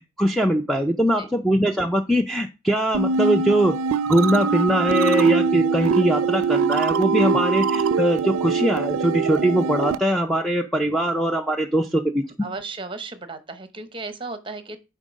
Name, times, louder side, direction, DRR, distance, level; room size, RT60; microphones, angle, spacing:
voice 1, 0.0-3.8 4.1-12.5, right 1 dB, ahead, 4 dB, 0.4 m, -21 dB
sound 1, 2.9-10.0, right 5 dB, 85° right, 0.4 m, -22 dB
voice 2, 12.4-14.8, right 3 dB, 25° right, 10 dB, 0.7 m, -35 dB
7.3 x 4.5 x 5.1 m, 0.29 s
head